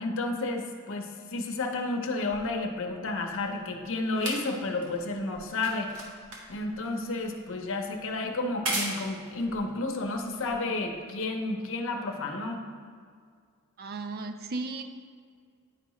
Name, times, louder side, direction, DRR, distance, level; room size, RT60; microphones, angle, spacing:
voice 1, 0.0-5.9 6.5-12.6, left 2 dB, 60° left, 3 dB, 0.7 m, -31 dB
sound 1, 2.3-10.9 11.8-11.9, right 2 dB, 75° right, 1.2 m, -39 dB
voice 2, 13.8-14.8, right 3 dB, 45° right, 7 dB, 0.4 m, -35 dB
9.8 x 4.6 x 3.1 m, 2.1 s
head